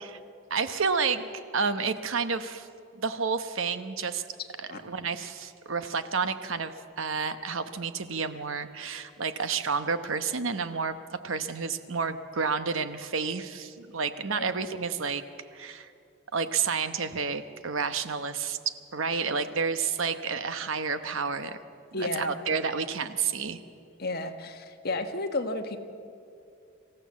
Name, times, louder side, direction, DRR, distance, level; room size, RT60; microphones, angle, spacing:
voice 1, 0.5-1.3 1.5-2.7 2.9-4.2 4.7-15.2 15.5-15.9 16.3-21.6 21.9-23.6, right 5 dB, 65° right, 10 dB, 1.0 m, -30 dB
voice 2, 21.9-22.3 24.0-25.8, left 2 dB, 45° left, 6 dB, 1.4 m, -32 dB
26.5 x 15.0 x 7.5 m, 2.5 s
head